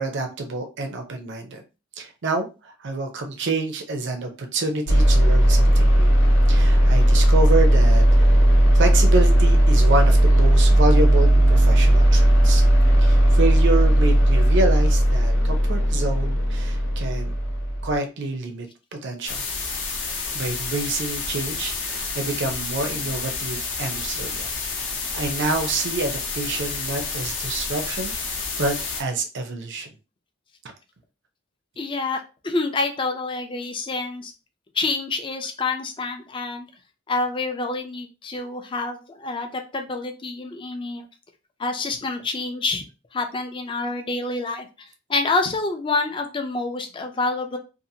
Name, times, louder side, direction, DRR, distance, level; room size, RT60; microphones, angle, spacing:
voice 1, 0.0-1.6 2.0-6.1 6.5-8.4 8.7-12.6 13.0-17.3 17.8-18.7 18.9-19.4 20.3-24.5 25.1-28.1 28.6-29.9, right 2 dB, 60° right, 4 dB, 0.5 m, -27 dB
sound 1, 4.9-18.0, right 1 dB, 90° left, 0.8 m, -16 dB
sound 2, 19.3-29.0, left 4 dB, 60° left, 0.7 m, -30 dB
voice 2, 31.8-34.3 34.8-36.7 37.1-41.0 41.6-42.8 43.1-44.7 45.1-47.6, left 3 dB, 25° left, 4 dB, 0.4 m, -27 dB
2.7 x 2.4 x 2.7 m, 0.30 s
head